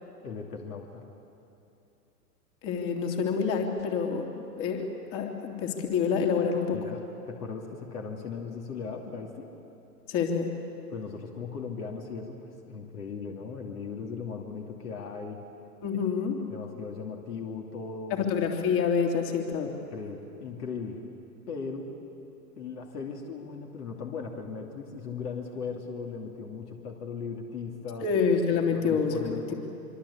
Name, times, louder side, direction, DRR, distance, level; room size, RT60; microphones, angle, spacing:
voice 1, 0.2-1.0 6.7-7.0 7.3-9.5 10.9-15.4 16.5-18.3 19.6-21.0 21.5-21.9 22.6-28.1 28.7-29.5, left 5 dB, 70° left, 1 dB, 2.8 m, -38 dB
voice 2, 2.6-4.3 4.6-4.8 5.1-6.8 10.1-10.5 15.8-16.3 18.1-19.7 28.0-29.5, left 6 dB, 40° left, 2 dB, 3.4 m, -27 dB
25.0 x 24.5 x 8.5 m, 2.8 s
hypercardioid pair, 115°, 48 cm